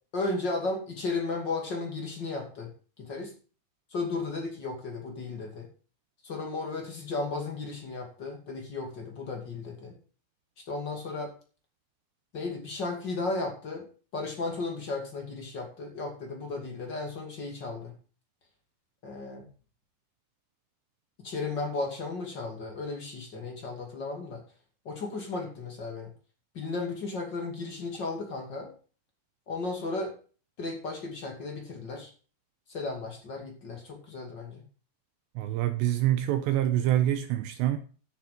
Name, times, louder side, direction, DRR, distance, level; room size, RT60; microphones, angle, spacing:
voice 1, 0.1-2.7 3.0-3.3 3.9-5.7 6.2-10.0 10.7-11.3 12.3-13.9 14.1-17.9 19.0-19.5 21.2-24.4 24.8-26.1 26.5-28.7 29.5-30.1 30.6-32.1 32.7-34.6, left 3 dB, 35° left, 2.0 m, -34 dB
voice 2, 35.4-37.8, right 13 dB, 80° right, 2.6 m, -26 dB
12.0 x 6.7 x 5.5 m
omnidirectional pair, 5.7 m